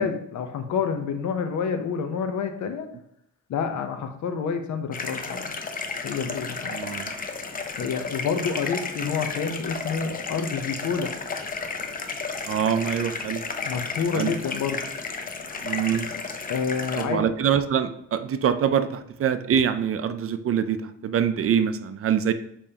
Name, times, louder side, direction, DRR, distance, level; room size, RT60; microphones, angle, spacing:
voice 1, 0.0-2.9 3.5-5.5 6.0-6.7 7.8-11.1 13.6-14.9 16.5-17.3, left 6 dB, 75° left, 6 dB, 0.9 m, -28 dB
sound 1, 4.9-17.0, left 4 dB, 30° left, 0.7 m, -33 dB
voice 2, 6.7-7.1 12.4-13.5 14.1-14.3 15.6-16.1 17.0-22.3, right 8 dB, 50° right, 10 dB, 0.5 m, -24 dB
7.0 x 5.1 x 2.9 m, 0.74 s
cardioid pair, 125°, 29 cm